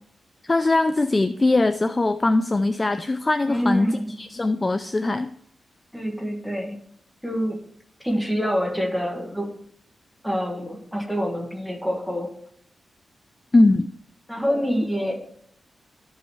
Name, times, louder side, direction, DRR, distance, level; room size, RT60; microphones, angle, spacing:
voice 1, 0.4-5.3 13.5-13.9, left 2 dB, 20° left, 10 dB, 0.3 m, -21 dB
voice 2, 3.5-4.1 5.9-6.7 7.2-7.6 8.0-9.5 10.2-12.3 14.3-15.1, equal, ahead, 1 dB, 1.5 m, -26 dB
13.0 x 5.4 x 3.2 m, 0.65 s
wide cardioid pair, 135°, 0 cm